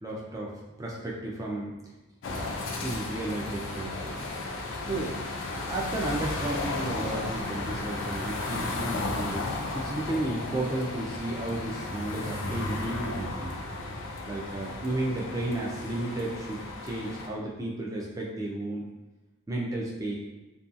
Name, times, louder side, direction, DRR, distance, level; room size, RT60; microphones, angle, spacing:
voice 1, 0.0-1.8 2.3-4.3 4.9-5.1 5.5-9.5 9.7-13.6 14.3-18.9 19.5-20.2, right 1 dB, 15° right, -3 dB, 0.4 m, -33 dB
sound 1, 2.2-17.3, left 2 dB, 60° left, 0.4 m, -34 dB
2.6 x 2.3 x 2.4 m, 1.1 s
head